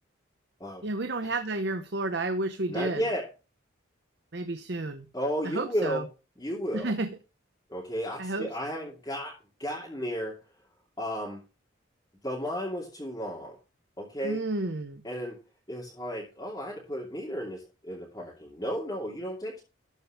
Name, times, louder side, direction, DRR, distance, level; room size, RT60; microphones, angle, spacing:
voice 1, 0.8-3.0 4.3-5.1 5.4-6.0 6.7-7.1 8.2-8.5 14.2-15.0, right 2 dB, 55° right, 0.9 m, -31 dB
voice 2, 2.7-3.3 5.1-6.1 6.4-6.9 7.7-10.4 11.0-11.4 12.2-13.5 14.0-14.4 15.0-15.4 15.7-19.6, equal, 20° left, 2.7 m, -33 dB
13.0 x 5.3 x 5.9 m
head